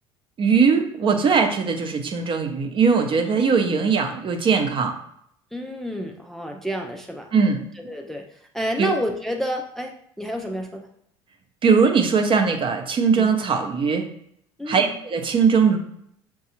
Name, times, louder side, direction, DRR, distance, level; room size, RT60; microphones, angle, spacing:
voice 1, 0.4-5.0 7.3-7.6 8.8-8.9 11.6-14.1 14.7-15.8, right 5 dB, 40° right, 5 dB, 0.7 m, -20 dB
voice 2, 3.3-3.7 5.5-7.3 7.8-10.9 13.2-13.3 14.6-15.0, equal, 5° left, 2 dB, 0.4 m, -30 dB
5.7 x 2.3 x 2.8 m, 0.71 s
hypercardioid pair, 80°, 14 cm